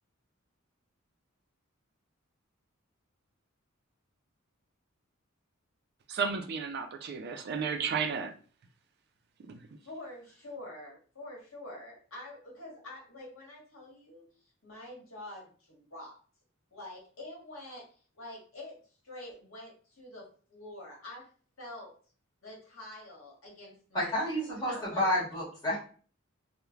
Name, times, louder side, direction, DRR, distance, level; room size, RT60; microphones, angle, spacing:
voice 1, 6.1-8.3 9.4-9.6, right 5 dB, 50° right, 6 dB, 0.4 m, -33 dB
voice 2, 9.8-14.2 14.6-16.2 16.7-17.8 18.1-18.7 19.0-21.2 21.6-21.9 22.4-24.1 24.7-25.0, left 1 dB, 70° left, -3 dB, 1.3 m, -46 dB
voice 3, 23.9-25.8, left 1 dB, 20° left, -7 dB, 1.3 m, -30 dB
3.1 x 2.1 x 2.4 m, 0.41 s
head